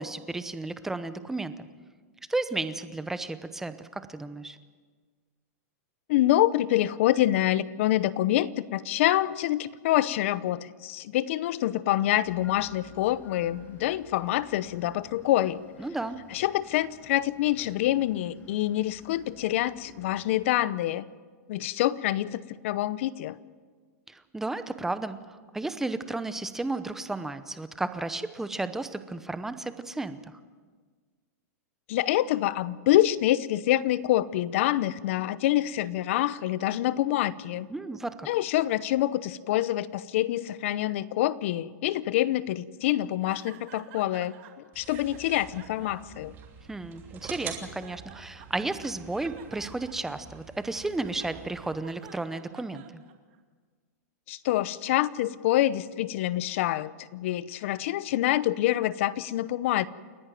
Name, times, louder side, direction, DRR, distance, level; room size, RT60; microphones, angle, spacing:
voice 1, 0.0-1.7 2.3-4.6 15.8-16.2 24.1-30.3 37.7-38.3 46.7-53.0, right 2 dB, 5° right, 12 dB, 0.8 m, -33 dB
voice 2, 6.1-15.6 16.3-21.1 21.5-23.4 31.9-37.7 38.3-44.3 44.8-46.3 54.3-59.9, left 14 dB, 50° left, 19 dB, 0.7 m, -26 dB
sound 1, 12.2-20.5, left 5 dB, 20° left, 1.9 m, -53 dB
sound 2, 43.3-44.5 44.9-47.0 47.4-48.7 49.1-53.4, right 11 dB, 45° right, 2.5 m, -50 dB
sound 3, 44.7-51.7, right 7 dB, 25° right, 3.0 m, -46 dB
29.0 x 11.0 x 9.1 m, 1.5 s
supercardioid pair, 155°, 9 cm